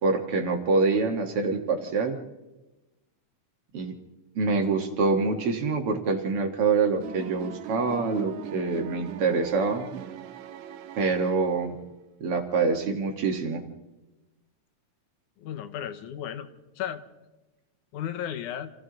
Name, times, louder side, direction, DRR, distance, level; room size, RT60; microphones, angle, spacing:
voice 1, 0.0-2.2 3.7-3.9 4.4-9.9 11.0-11.8 12.2-13.6, right 4 dB, 55° right, 4 dB, 2.2 m, -25 dB
sound 1, 7.0-11.9, right 9 dB, 80° right, 2.3 m, -41 dB
voice 2, 15.4-16.5 16.8-17.0 17.9-18.7, left 10 dB, 90° left, 10 dB, 2.6 m, -34 dB
28.5 x 27.5 x 3.9 m, 1.1 s
omnidirectional pair, 3.5 m